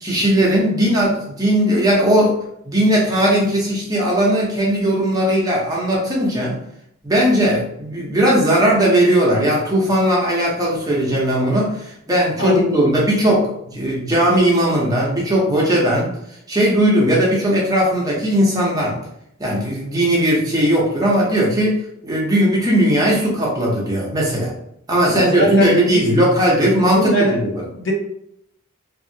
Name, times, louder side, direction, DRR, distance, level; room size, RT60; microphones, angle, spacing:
voice 1, 0.0-2.4 2.6-6.6 7.0-16.1 16.5-19.0 19.4-24.5 24.9-27.6, right 1 dB, 15° right, -4 dB, 0.7 m, -18 dB
voice 2, 12.4-12.8 25.1-26.0 26.9-27.4 27.7-27.9, equal, 60° left, 0 dB, 0.6 m, -21 dB
2.9 x 2.6 x 2.7 m, 0.75 s
head